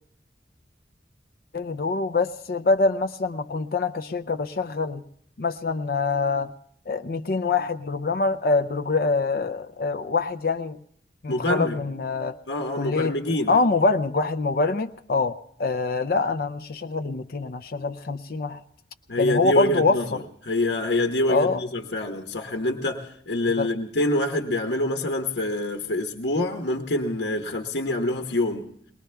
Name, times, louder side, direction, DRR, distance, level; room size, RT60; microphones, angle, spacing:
voice 1, 1.5-5.0 5.4-6.5 6.9-10.8 11.2-12.4 12.7-13.1 13.5-18.6 19.2-20.2 21.3-21.6 23.6-23.7, left 3 dB, 55° left, 9 dB, 0.5 m, -25 dB
voice 2, 11.3-11.8 12.5-13.6 19.1-28.6, left 1 dB, 80° left, 3 dB, 1.2 m, -26 dB
21.5 x 19.5 x 3.4 m, 0.65 s
head